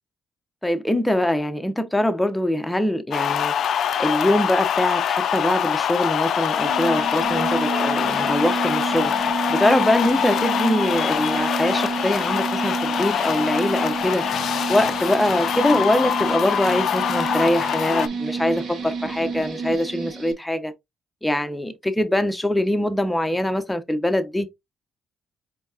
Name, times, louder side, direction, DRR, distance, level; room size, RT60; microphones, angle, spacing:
voice 1, 0.6-3.5 4.0-9.1 9.5-14.2 14.7-20.7 21.2-24.5, left 1 dB, 5° left, 0.8 m, -23 dB
sound 1, 3.1-18.1, left 9 dB, 70° left, 0.4 m, -24 dB
sound 2, 6.6-20.3, right 5 dB, 65° right, 1.5 m, -30 dB
4.4 x 3.7 x 2.8 m
cardioid pair, 90°, 0 cm